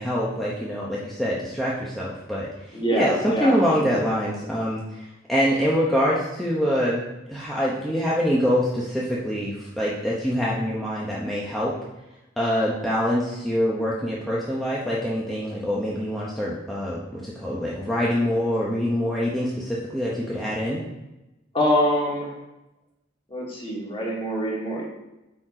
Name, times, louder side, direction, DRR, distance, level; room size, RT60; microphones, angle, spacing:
voice 1, 0.0-7.0 7.3-11.7 12.4-20.8, equal, ahead, -7 dB, 1.0 m, -25 dB
voice 2, 2.7-4.0 21.5-22.3 23.3-24.8, equal, 25° left, -4 dB, 2.2 m, -25 dB
8.5 x 4.3 x 5.0 m, 0.96 s
head